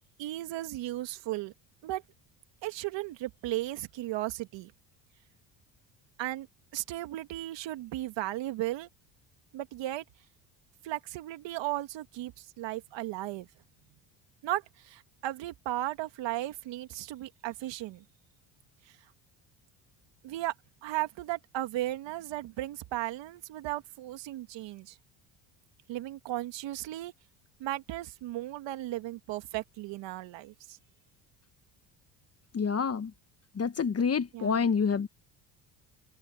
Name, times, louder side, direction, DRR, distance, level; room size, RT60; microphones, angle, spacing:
voice 1, 0.2-1.5 1.8-2.0 2.6-4.7 6.2-6.5 6.7-8.9 9.5-10.0 10.8-13.5 14.4-18.0 20.2-20.5 20.8-25.0 25.9-27.1 27.6-30.8 34.3-34.7, right 15 dB, 70° right, 2.1 m, -35 dB
voice 2, 32.5-33.1 33.6-35.1, left 6 dB, 30° left, 1.5 m, -27 dB
open air
supercardioid pair, 75°, 46 cm